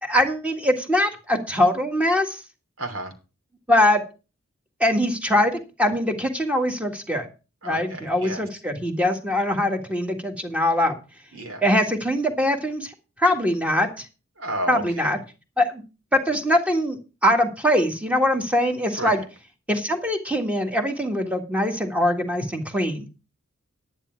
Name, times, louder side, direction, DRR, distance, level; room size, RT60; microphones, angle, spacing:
voice 1, 0.0-2.4 3.7-4.0 4.8-7.3 7.6-11.0 11.6-12.9 13.2-14.0 14.7-15.2 15.6-15.8 16.1-19.2 19.7-23.1, left 1 dB, 5° right, 4 dB, 1.7 m, -22 dB
voice 2, 2.8-3.1 7.6-8.4 11.3-11.6 14.4-15.2 19.0-19.2, right 1 dB, 70° right, 5 dB, 3.1 m, -32 dB
10.5 x 10.5 x 4.6 m, 0.32 s
head